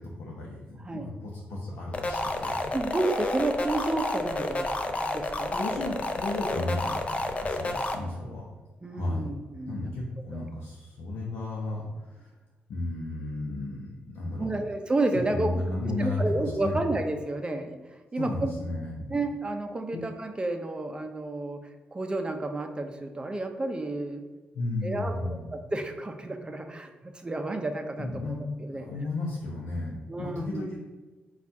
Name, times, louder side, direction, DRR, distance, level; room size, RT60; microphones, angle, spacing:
voice 1, 0.0-2.6 5.1-8.5 8.8-9.3 9.7-12.3 12.7-14.6 15.3-16.8 18.2-19.2 19.9-20.0 24.5-25.4 28.0-28.4 28.7-30.8, left 2 dB, 80° left, -4 dB, 0.7 m, -34 dB
sound 1, 1.9-7.9, left 2 dB, 35° left, 0.5 m, -30 dB
voice 2, 2.7-5.5 8.8-9.9 10.3-10.4 14.4-15.5 16.0-18.5 19.1-21.6 21.9-24.2 24.8-28.9 30.1-30.7, right 2 dB, 25° right, 5 dB, 0.5 m, -31 dB
4.1 x 2.4 x 4.6 m, 1.3 s
cardioid pair, 80°, 4 cm